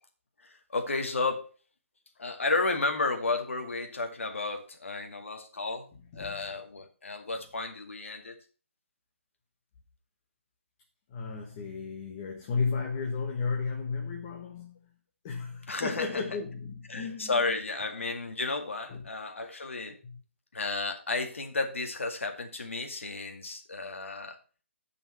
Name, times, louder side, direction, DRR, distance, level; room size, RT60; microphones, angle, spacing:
voice 1, 0.4-1.5 2.2-8.4 15.7-16.1 16.9-20.0 20.5-24.4, left 3 dB, 75° left, 2.0 m, -32 dB
voice 2, 11.1-14.8 15.2-17.6 18.9-19.0 20.0-20.2, left 4 dB, 25° left, 1.3 m, -34 dB
9.4 x 5.5 x 5.7 m
hypercardioid pair, 160°, 7 cm